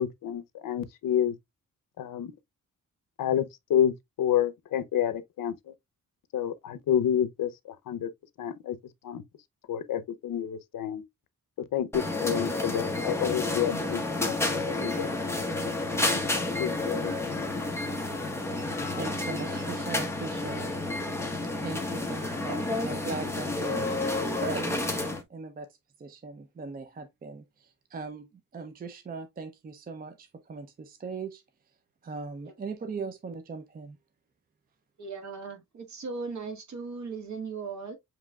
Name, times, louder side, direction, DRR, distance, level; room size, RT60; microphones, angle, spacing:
voice 1, 0.0-1.4 2.0-2.3 3.2-5.6 6.3-7.5 7.9-8.1 8.4-8.8 9.0-9.2 9.7-11.0 11.7-14.3 14.7-15.4 16.0-17.1, left 9 dB, 85° left, 0.7 m, -29 dB
sound 1, 11.9-25.2, left 2 dB, 10° left, 0.9 m, -30 dB
voice 2, 19.0-20.8 21.6-25.7 26.0-31.4 32.0-34.0, right 4 dB, 30° right, 0.5 m, -39 dB
voice 3, 35.0-38.0, right 4 dB, 60° right, 1.6 m, -37 dB
7.3 x 3.0 x 2.2 m
wide cardioid pair, 180°, 33 cm